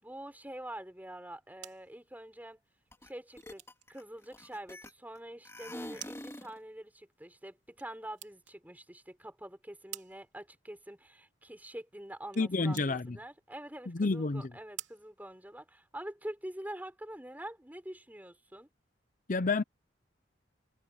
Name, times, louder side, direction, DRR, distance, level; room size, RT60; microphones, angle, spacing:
voice 1, 0.0-2.6 3.0-3.6 3.9-18.7, right 1 dB, 10° right, 6.3 m, -45 dB
sound 1, 1.2-16.1, right 13 dB, 75° right, 3.5 m, -54 dB
sound 2, 2.9-3.1 3.4-5.2 5.5-6.6, left 1 dB, 15° left, 2.3 m, -45 dB
voice 2, 12.4-13.2 13.9-14.5 19.3-19.6, left 3 dB, 45° left, 0.7 m, -29 dB
head